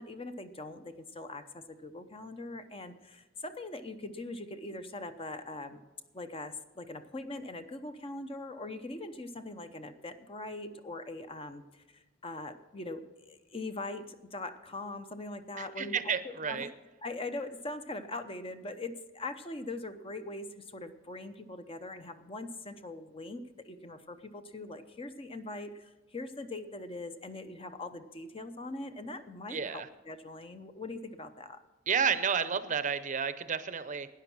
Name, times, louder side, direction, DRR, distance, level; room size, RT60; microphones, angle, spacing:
voice 1, 0.0-5.8 6.1-16.7 17.0-31.6, left 2 dB, 30° left, 9 dB, 0.7 m, -42 dB
voice 2, 15.6-16.7 29.5-29.9 31.9-34.1, right 6 dB, 40° right, 13 dB, 0.7 m, -31 dB
12.5 x 9.7 x 6.1 m, 1.2 s
head